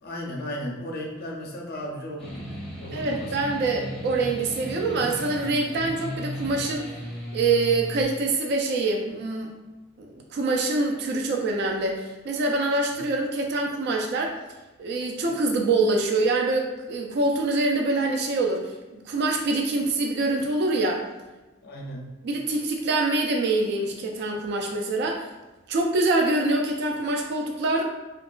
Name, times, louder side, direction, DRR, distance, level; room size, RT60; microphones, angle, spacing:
voice 1, 0.0-3.5 12.9-13.0 21.6-22.0, equal, 50° left, 0 dB, 0.5 m, -35 dB
sound 1, 2.2-8.0, equal, 5° left, 0.6 m, -36 dB
voice 2, 2.9-6.8 7.3-9.5 10.0-14.3 14.8-21.0 22.2-25.3 25.7-27.8, right 2 dB, 55° right, 1 dB, 0.3 m, -25 dB
2.8 x 2.3 x 2.3 m, 1.1 s
head